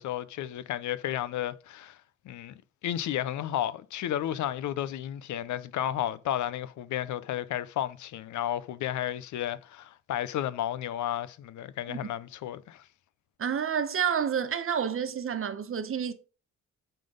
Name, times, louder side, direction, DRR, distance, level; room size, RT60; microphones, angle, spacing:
voice 1, 0.0-2.0 2.2-12.9, left 11 dB, 75° left, 0.7 m, -32 dB
voice 2, 13.4-16.1, right 7 dB, 45° right, 1.2 m, -29 dB
9.1 x 3.9 x 5.1 m
cardioid pair, 90°, 30 cm